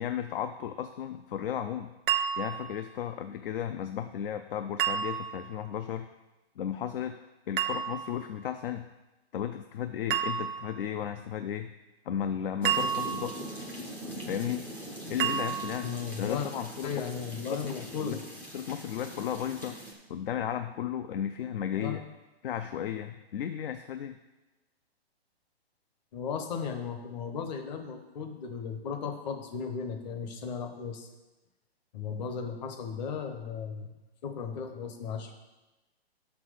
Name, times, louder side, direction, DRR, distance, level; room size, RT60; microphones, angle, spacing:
voice 1, 0.0-1.9 2.4-6.1 6.6-7.2 7.5-8.9 9.3-11.7 12.1-13.4 14.3-14.7 15.1-15.9 16.2-17.0 17.5-17.6 18.0-18.2 18.5-19.8 20.1-22.0 22.4-24.2, left 9 dB, 55° left, 9 dB, 0.5 m, -34 dB
sound 1, 2.1-2.8 4.8-5.5 7.6-8.2 10.1-10.8 12.6-13.5 15.2-15.9, right 9 dB, 55° right, 0.6 m, -30 dB
sound 2, 12.6-19.9, right 1 dB, 5° left, 0.5 m, -42 dB
voice 2, 15.8-16.5 16.8-18.2 21.7-22.0 26.1-31.1 31.9-33.9 34.2-35.3, left 6 dB, 40° left, 5 dB, 1.1 m, -36 dB
6.0 x 5.9 x 6.4 m, 1.1 s
hypercardioid pair, 145°, 32 cm